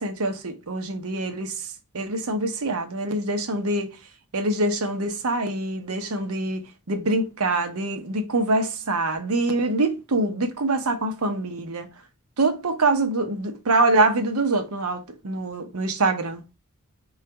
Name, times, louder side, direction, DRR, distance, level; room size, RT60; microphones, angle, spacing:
voice 1, 0.0-3.9 4.3-6.6 6.9-11.9 12.4-16.4, right 2 dB, 75° right, 0.8 m, -24 dB
3.9 x 2.4 x 4.5 m
head